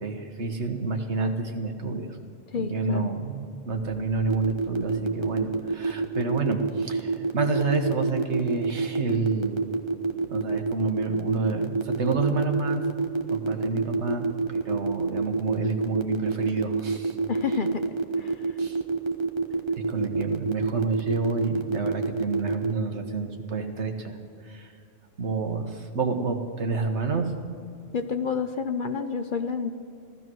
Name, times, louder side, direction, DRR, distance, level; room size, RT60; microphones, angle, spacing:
voice 1, 0.0-2.2 2.5-9.7 10.3-12.8 13.3-17.2 18.6-18.8 19.9-24.2 24.4-24.7 25.2-27.3, right 4 dB, 65° right, 5 dB, 1.7 m, -29 dB
voice 2, 2.5-3.1 17.3-17.9 18.2-18.6 27.9-29.7, left 5 dB, 50° left, 8 dB, 0.8 m, -29 dB
sound 1, 4.3-22.7, right 3 dB, 25° right, 0.9 m, -27 dB
15.0 x 14.0 x 6.2 m, 2.5 s
omnidirectional pair, 1.3 m